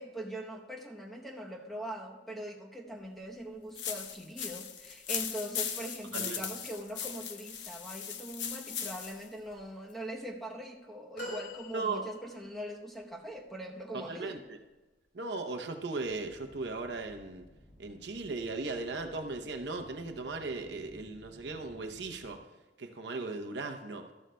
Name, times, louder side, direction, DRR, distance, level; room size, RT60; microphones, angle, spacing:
voice 1, 0.0-14.4, right 1 dB, ahead, 0 dB, 0.9 m, -42 dB
sound 1, 3.8-9.3, left 8 dB, 85° left, 0.8 m, -38 dB
voice 2, 6.1-6.4 11.7-12.0 13.9-14.6 15.1-17.4 17.8-22.4 22.8-24.1, right 3 dB, 70° right, 5 dB, 0.7 m, -37 dB
sound 2, 11.2-12.6 13.3-13.4, left 1 dB, 70° left, 3.6 m, -43 dB
sound 3, 16.0-22.3, equal, 35° left, 2.6 m, -57 dB
13.0 x 12.5 x 2.2 m, 1.2 s
head